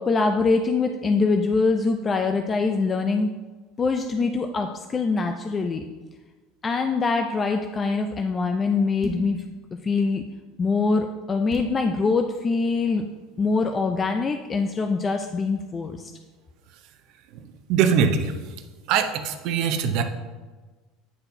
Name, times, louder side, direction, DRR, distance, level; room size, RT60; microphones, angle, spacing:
voice 1, 0.0-3.3 3.8-5.8 6.6-9.4 9.8-10.2 10.6-13.0 13.4-16.1, left 4 dB, 25° left, 5 dB, 0.3 m, -23 dB
sound 1, 9.0-9.4 11.5-11.8, right 2 dB, 10° right, 0.9 m, -32 dB
voice 2, 17.3-18.5 18.9-20.0, right 7 dB, 60° right, 7 dB, 0.6 m, -23 dB
9.7 x 4.2 x 2.7 m, 1.3 s
supercardioid pair, 135°, 0 cm